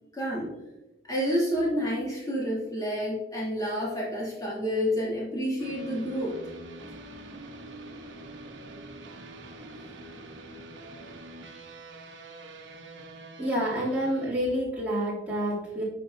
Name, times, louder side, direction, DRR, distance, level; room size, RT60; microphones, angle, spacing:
voice 1, 0.1-0.5 1.1-6.4, equal, 20° left, -7 dB, 2.8 m, -29 dB
sound 1, 5.6-14.3, right 2 dB, 65° right, 1.0 m, -45 dB
voice 2, 13.4-15.8, equal, 10° right, -9 dB, 2.9 m, -28 dB
10.0 x 6.4 x 2.7 m, 1.0 s
head